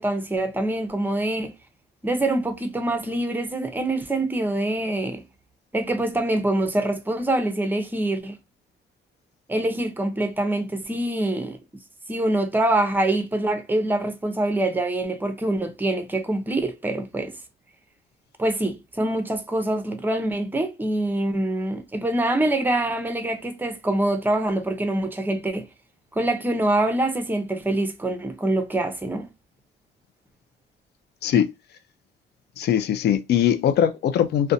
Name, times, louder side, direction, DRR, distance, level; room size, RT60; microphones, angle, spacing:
voice 1, 0.0-1.5 2.0-5.2 5.7-8.4 9.5-11.6 12.1-17.3 18.4-25.7 26.1-29.3, right 1 dB, 10° right, 0.6 m, -25 dB
voice 2, 32.6-34.5, left 9 dB, 55° left, 0.4 m, -21 dB
2.5 x 2.1 x 2.6 m
cardioid pair, 90°, 20 cm